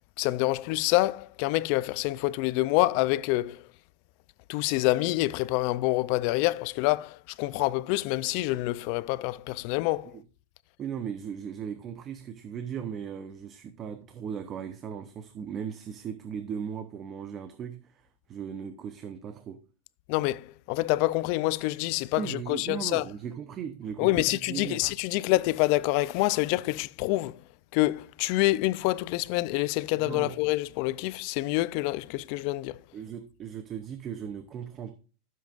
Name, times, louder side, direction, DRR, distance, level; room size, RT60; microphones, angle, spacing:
voice 1, 0.2-3.6 4.5-10.1 20.1-23.0 24.0-27.3 27.7-32.8, left 19 dB, 50° left, 0.4 m, -27 dB
voice 2, 10.8-19.6 22.1-24.8 29.9-30.4 32.9-35.0, right 7 dB, 25° right, 0.7 m, -37 dB
14.0 x 7.6 x 2.5 m
supercardioid pair, 155°, 0 cm